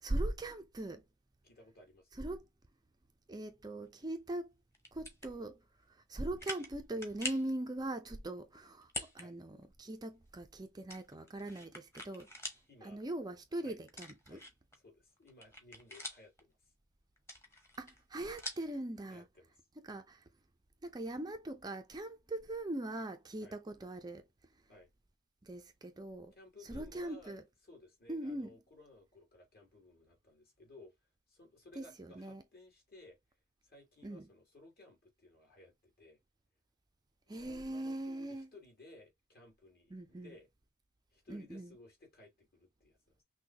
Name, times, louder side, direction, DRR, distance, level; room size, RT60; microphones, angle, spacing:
voice 1, 0.0-1.0 2.1-2.4 3.3-4.5 4.9-5.6 5.9-12.3 12.8-14.4 17.8-19.2 19.8-20.2 20.8-24.3 25.4-26.3 26.7-27.4 28.1-28.5 31.8-32.4 34.0-34.3 37.3-38.5 39.9-40.4 41.3-41.7, right 1 dB, 20° right, 0.5 m, -41 dB
voice 2, 1.4-2.2 9.2-9.4 12.7-13.0 13.5-13.8 14.3-14.4 14.7-16.6 19.1-19.5 23.4-23.6 24.7-24.9 26.3-27.4 27.6-30.9 31.3-33.2 33.6-36.2 37.3-40.5 41.1-43.2, left 2 dB, 45° left, 2.7 m, -58 dB
sound 1, 4.7-5.3 5.9-6.0 6.4-6.7 7.0-7.5 8.8-9.3 9.6-9.7 10.9-12.6 13.0-13.1 13.9-14.8 15.2-16.4 17.2-18.7, left 1 dB, 15° left, 1.2 m, -44 dB
6.1 x 2.3 x 2.8 m
head